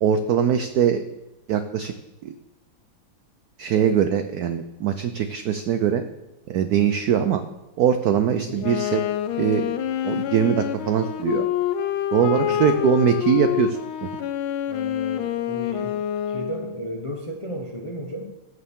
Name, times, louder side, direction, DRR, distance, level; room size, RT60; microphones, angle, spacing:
voice 1, 0.0-1.0 1.5-1.9 2.2-2.3 3.6-6.0 6.5-7.4 7.8-9.0 9.4-9.7 10.0-11.5 12.1-14.1, right 8 dB, 80° right, 9 dB, 0.8 m, -22 dB
Wind instrument woodwind instrument, 8.6-16.9, left 10 dB, 85° left, 1.4 m, -27 dB
voice 2, 12.2-13.0 14.7-16.0 16.3-18.3, equal, 35° left, 1 dB, 0.5 m, -34 dB
16.0 x 6.7 x 3.6 m, 0.98 s
omnidirectional pair, 2.2 m